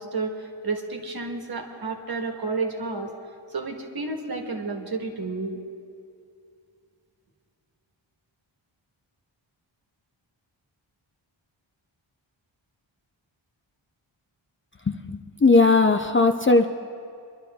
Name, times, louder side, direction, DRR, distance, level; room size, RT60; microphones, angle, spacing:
voice 1, 0.0-3.1 3.5-5.6, right 3 dB, 50° right, 2 dB, 1.5 m, -31 dB
voice 2, 14.9-16.7, left 3 dB, 25° left, 5 dB, 0.5 m, -18 dB
24.5 x 11.5 x 3.5 m, 2.4 s
wide cardioid pair, 115°, 47 cm